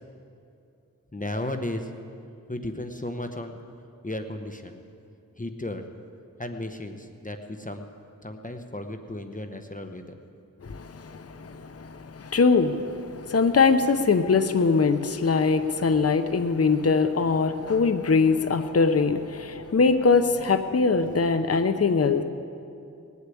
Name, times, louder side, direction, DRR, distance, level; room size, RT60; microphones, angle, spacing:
voice 1, 1.1-1.9 2.5-3.7 4.0-4.8 5.4-5.9 6.4-7.9 8.2-10.1, left 1 dB, 25° left, 6 dB, 1.1 m, -34 dB
voice 2, 10.6-22.2, left 4 dB, 45° left, 9 dB, 0.8 m, -22 dB
19.5 x 8.4 x 8.5 m, 2.6 s
wide cardioid pair, 50°, 33 cm